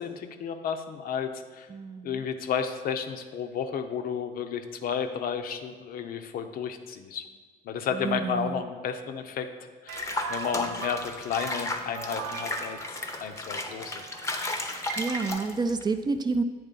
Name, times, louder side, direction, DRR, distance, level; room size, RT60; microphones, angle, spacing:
voice 1, 0.0-1.7 2.0-7.3 7.7-9.5 9.8-14.0, left 7 dB, 60° left, 8 dB, 0.6 m, -32 dB
voice 2, 1.7-2.2 7.9-8.6 14.7-16.4, right 4 dB, 25° right, 8 dB, 0.4 m, -29 dB
Water / Bathtub (filling or washing), 9.9-15.8, left 2 dB, 15° left, 0.6 m, -34 dB
sound 1, 9.9-15.3, right 6 dB, 85° right, 0.5 m, -40 dB
8.7 x 3.2 x 5.3 m, 1.5 s
cardioid pair, 110°, 17 cm